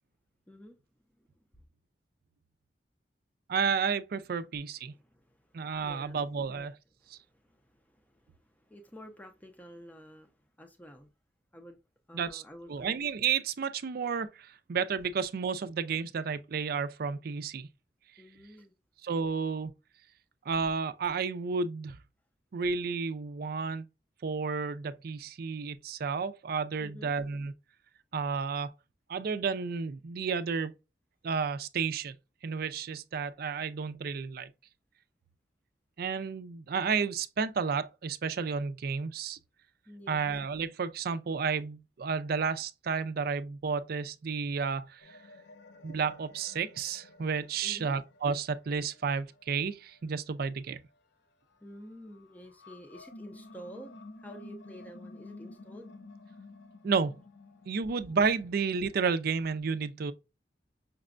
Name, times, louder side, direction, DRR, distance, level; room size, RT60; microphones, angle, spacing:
voice 1, 0.5-0.8 1.2-1.3 4.9-6.2 6.5-6.7 7.0-11.1 11.5-11.8 12.1-12.9 18.2-18.7 26.8-27.2 39.9-40.3 47.6-48.0 51.6-55.9, equal, 10° left, 0.5 m, -50 dB
voice 2, 3.5-4.9 5.5-6.8 7.1-7.2 12.1-12.4 12.7-17.7 19.0-19.7 20.5-22.0 22.5-23.8 24.2-27.5 28.1-28.7 29.1-30.7 31.2-32.1 32.4-34.5 36.0-39.4 40.1-45.2 45.8-50.8 56.8-57.2 57.7-60.1, right 5 dB, 55° right, 0.4 m, -31 dB
sound 1, 45.0-51.0 51.5-59.6, left 2 dB, 70° left, 0.5 m, -52 dB
5.8 x 2.2 x 2.4 m
head